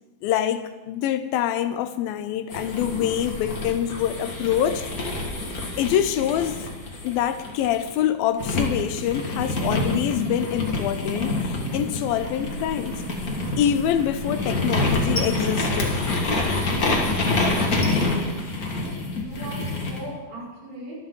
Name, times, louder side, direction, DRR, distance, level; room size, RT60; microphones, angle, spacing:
voice 1, 0.2-4.9 5.8-6.6 7.0-13.0 13.6-16.0, left 10 dB, 80° left, 11 dB, 2.5 m, -25 dB
sound 1, 2.5-7.9 8.4-20.0, left 2 dB, 35° left, 1.5 m, -27 dB
sound 2, 12.0-17.2, right 1 dB, 35° right, 3.2 m, -41 dB
voice 2, 17.7-18.2 18.7-19.6 19.9-21.0, right 1 dB, 70° right, -6 dB, 7.2 m, -38 dB
24.0 x 9.3 x 4.0 m, 1.2 s
omnidirectional pair, 4.2 m